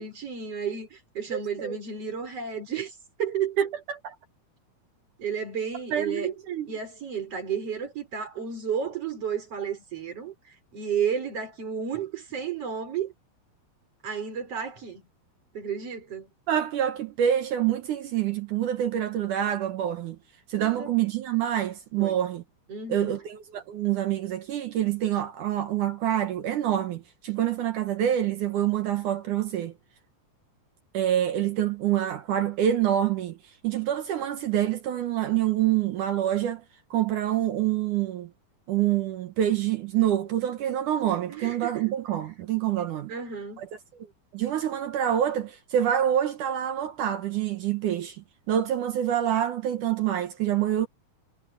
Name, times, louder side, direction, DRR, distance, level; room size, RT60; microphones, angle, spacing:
voice 1, 0.0-3.6 5.2-6.3 6.7-10.3 10.7-13.1 14.0-15.0 15.5-16.3 20.6-20.9 22.0-22.2 22.7-23.2 41.3-41.9 43.1-43.6, right 7 dB, 40° right, 5.6 m, -32 dB
voice 2, 1.3-1.8 3.6-4.1 5.9-6.7 16.5-20.2 20.5-22.4 22.9-29.7 30.9-33.4 33.6-36.6 36.9-38.3 38.7-43.1 43.6-43.7 44.3-50.9, right 11 dB, 65° right, 2.3 m, -26 dB
omnidirectional pair, 4.5 m